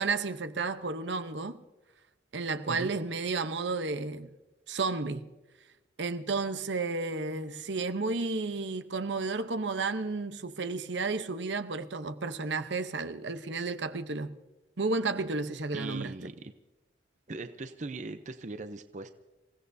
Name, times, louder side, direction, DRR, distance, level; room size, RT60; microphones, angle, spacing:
voice 1, 0.0-1.6 2.3-4.3 4.7-5.3 6.0-14.3 14.8-16.1, right 3 dB, 75° right, 0.9 m, -32 dB
voice 2, 15.7-16.5 17.3-19.1, right 2 dB, 40° right, 0.6 m, -39 dB
27.5 x 16.5 x 2.7 m
head